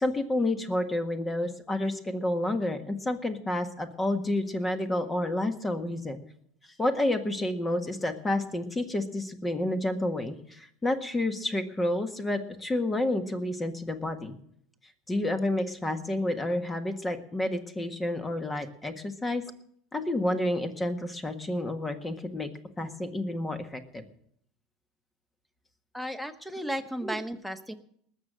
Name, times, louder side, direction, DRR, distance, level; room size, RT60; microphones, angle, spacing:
voice 1, 0.0-6.2 6.8-14.3 15.1-19.4 19.9-22.5 22.8-24.0 27.0-27.2, left 1 dB, 15° left, 8 dB, 1.6 m, -30 dB
voice 2, 25.9-27.7, equal, ahead, 10 dB, 1.4 m, -34 dB
19.5 x 6.7 x 7.6 m, 0.67 s
hypercardioid pair, 90°, 0 cm